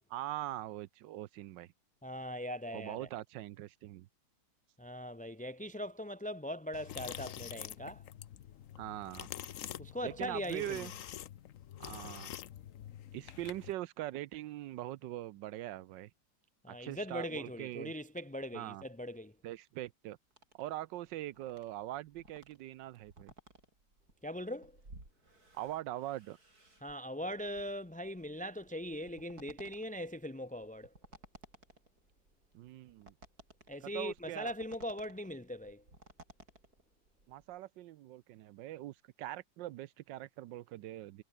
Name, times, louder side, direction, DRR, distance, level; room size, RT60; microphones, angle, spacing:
voice 1, 0.1-1.7 2.7-4.1 8.8-9.3 10.0-10.9 11.8-12.3 13.1-16.1 16.7-17.9 18.5-18.8 19.4-20.2 20.5-23.3 25.5-26.4 32.5-33.1 33.8-34.5 37.3-41.2, right 14 dB, 75° right, 1.3 m, -42 dB
voice 2, 2.0-3.1 4.8-8.0 9.8-10.9 16.6-19.3 24.2-24.8 26.8-30.9 33.7-35.8, equal, 10° left, 0.6 m, -40 dB
sound 1, 6.7-13.7, left 11 dB, 60° left, 0.9 m, -46 dB
sound 2, 20.3-37.6, right 2 dB, 50° right, 7.1 m, -59 dB
omnidirectional pair, 2.0 m